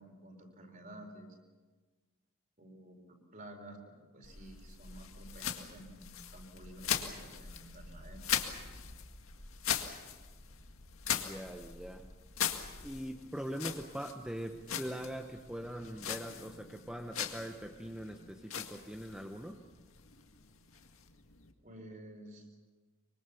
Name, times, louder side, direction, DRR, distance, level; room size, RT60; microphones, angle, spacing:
voice 1, 0.0-1.4 2.6-8.2 21.6-22.6, right 1 dB, 40° right, 3 dB, 4.4 m, -52 dB
sound 1, 4.2-21.5, left 8 dB, 75° left, 1.9 m, -41 dB
voice 2, 11.1-12.1 12.8-19.6, equal, 5° right, 2 dB, 1.0 m, -42 dB
24.5 x 24.0 x 7.1 m, 1.3 s
head